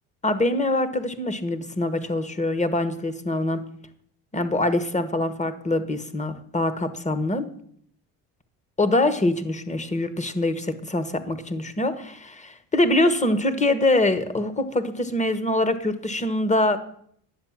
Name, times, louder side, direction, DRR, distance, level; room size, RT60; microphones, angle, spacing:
voice 1, 0.2-3.7 4.3-7.5 8.8-16.8, left 2 dB, 15° left, 1.2 m, -24 dB
11.0 x 7.9 x 7.3 m
cardioid pair, 95°, 40 cm